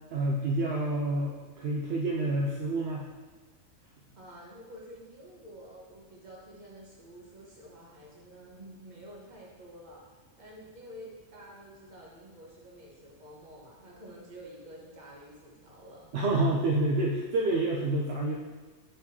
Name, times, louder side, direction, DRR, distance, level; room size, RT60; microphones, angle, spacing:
voice 1, 0.1-3.0 16.1-18.4, right 2 dB, 60° right, -1 dB, 0.7 m, -28 dB
voice 2, 4.1-16.1, equal, 35° right, -4 dB, 1.3 m, -49 dB
7.6 x 4.6 x 2.7 m, 1.3 s
omnidirectional pair, 1.5 m